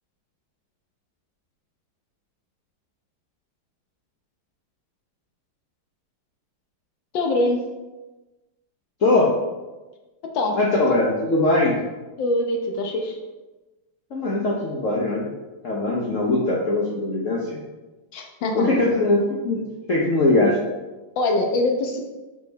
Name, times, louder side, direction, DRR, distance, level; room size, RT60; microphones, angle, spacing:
voice 1, 7.1-7.6 10.3-10.6 10.9-11.0 12.2-13.2 18.1-18.8 21.2-22.0, left 2 dB, 80° left, 3 dB, 1.7 m, -23 dB
voice 2, 9.0-9.3 10.5-11.7 14.1-15.3 15.6-17.6 18.5-19.6 19.9-20.6, left 2 dB, 50° left, -3 dB, 1.1 m, -21 dB
6.2 x 5.2 x 4.1 m, 1.1 s
omnidirectional pair, 2.0 m